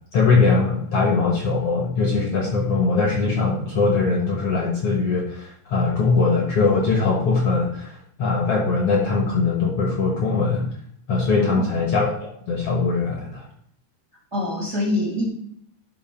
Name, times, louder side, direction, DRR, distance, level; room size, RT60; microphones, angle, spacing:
voice 1, 0.1-10.7 11.1-13.4, left 4 dB, 55° left, 1 dB, 1.9 m, -21 dB
voice 2, 11.4-11.8 14.3-15.3, left 1 dB, 25° right, -2 dB, 2.3 m, -25 dB
11.5 x 5.9 x 4.4 m, 0.68 s
omnidirectional pair, 3.8 m